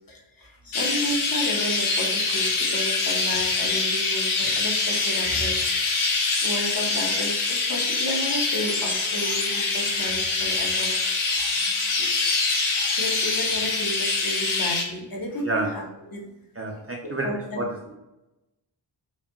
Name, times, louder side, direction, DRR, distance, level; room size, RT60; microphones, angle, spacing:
voice 1, 0.1-6.2 6.4-10.9 12.0-12.2 13.0-15.8 16.1-16.3 17.2-17.6, equal, 45° left, 0 dB, 0.8 m, -32 dB
Chirp tweet, 0.7-14.8, left 3 dB, 85° left, 0.8 m, -24 dB
voice 2, 11.5-11.9 15.4-15.7 16.5-17.7, right 2 dB, 30° right, 0 dB, 0.4 m, -30 dB
5.0 x 2.3 x 2.7 m, 0.96 s
wide cardioid pair, 160°, 48 cm